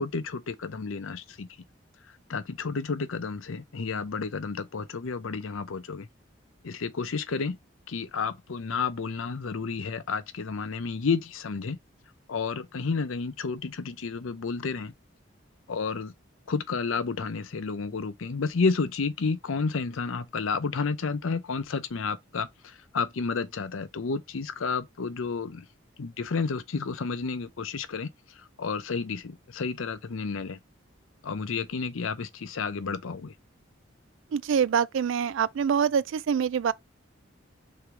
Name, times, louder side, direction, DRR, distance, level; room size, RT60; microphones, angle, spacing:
voice 1, 0.0-1.5 2.3-6.1 6.6-7.6 7.9-11.8 12.3-14.9 15.7-16.1 16.5-25.6 26.0-28.1 28.4-30.6 31.2-33.3, left 4 dB, 80° left, 0.6 m, -31 dB
voice 2, 34.3-36.7, right 7 dB, 70° right, 0.3 m, -25 dB
3.6 x 3.2 x 4.5 m
head